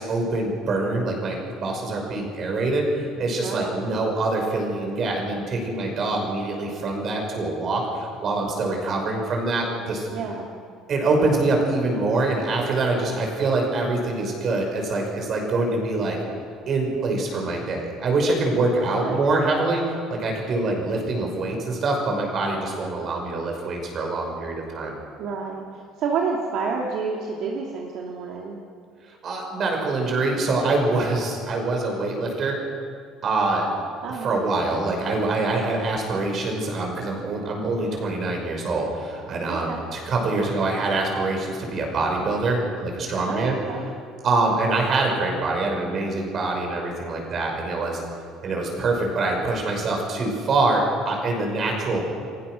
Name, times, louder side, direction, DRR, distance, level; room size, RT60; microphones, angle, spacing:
voice 1, 0.0-10.1 10.9-16.2 16.7-25.0 29.1-32.6 33.2-33.7 34.1-43.6 44.2-48.0 48.4-52.0, right 2 dB, 30° right, 1 dB, 5.7 m, -25 dB
voice 2, 3.4-3.9 10.1-10.5 19.0-19.4 25.2-28.6 34.0-34.4 39.5-39.8 43.3-43.9, right 5 dB, 50° right, -1 dB, 2.6 m, -29 dB
29.5 x 23.5 x 6.4 m, 2.3 s
cardioid pair, 175°, 0 cm